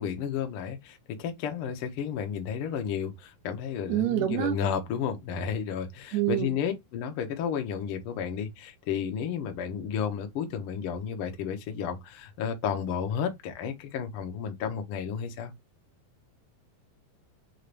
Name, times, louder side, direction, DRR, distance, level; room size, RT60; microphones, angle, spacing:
voice 1, 0.0-15.5, left 7 dB, 85° left, 1.2 m, -32 dB
voice 2, 3.9-4.6 6.1-6.5, right 14 dB, 75° right, 1.8 m, -26 dB
5.4 x 2.5 x 3.2 m
omnidirectional pair, 3.8 m